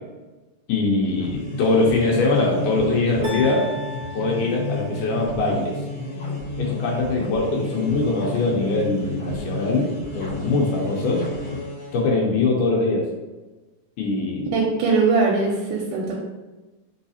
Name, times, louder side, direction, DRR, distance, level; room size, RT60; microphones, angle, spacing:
voice 1, 0.7-3.7 4.1-5.8 6.6-11.3 11.9-13.1 14.0-14.5, left 3 dB, 80° left, -2 dB, 2.2 m, -22 dB
sound 1, 1.0-12.1, left 2 dB, 65° left, 1.0 m, -31 dB
sound 2, 3.2-5.4, equal, 60° right, 1.0 m, -36 dB
voice 2, 14.5-16.2, right 4 dB, 85° right, -1 dB, 2.1 m, -21 dB
4.7 x 3.3 x 2.7 m, 1.2 s
omnidirectional pair, 3.6 m